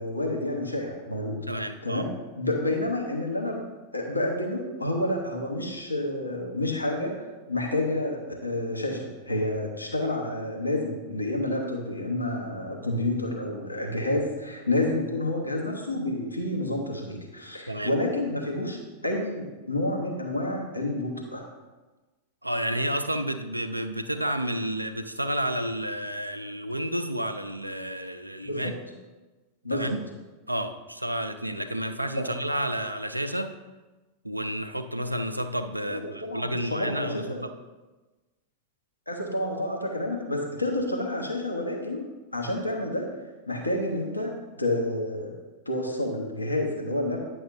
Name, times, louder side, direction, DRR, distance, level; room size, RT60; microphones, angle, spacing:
voice 1, 0.0-3.6 3.9-21.5 28.4-28.7 29.6-29.9 32.2-32.3 35.9-37.4 39.1-42.1 42.3-43.1 43.5-45.3 45.7-47.2, left 1 dB, 85° left, 0 dB, 1.0 m, -29 dB
voice 2, 1.5-2.1 17.7-18.0 22.4-28.7 29.7-30.0 30.5-33.5 34.2-37.5, right 1 dB, 85° right, 8 dB, 0.4 m, -30 dB
9.4 x 6.1 x 2.6 m, 1.2 s
figure-of-eight pair, 90°, 0 cm